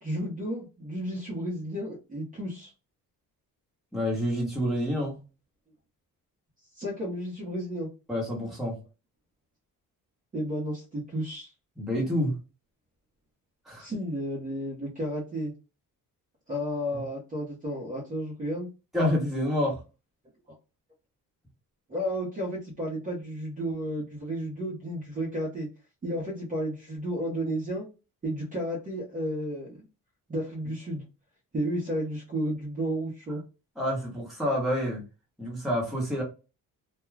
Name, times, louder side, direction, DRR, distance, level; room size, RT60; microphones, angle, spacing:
voice 1, 0.0-2.7 6.7-7.9 10.3-11.5 13.8-15.5 16.5-18.7 21.9-25.7 26.0-27.9 28.2-29.8 30.3-31.0 31.5-33.4, equal, 25° right, -4 dB, 0.7 m, -32 dB
voice 2, 3.9-5.2 8.1-8.8 11.8-12.3 13.7-13.9 18.9-19.8 33.8-35.0 35.4-36.2, equal, ahead, -4 dB, 1.0 m, -28 dB
2.3 x 2.2 x 3.1 m, 0.30 s
cardioid pair, 165°, 35 cm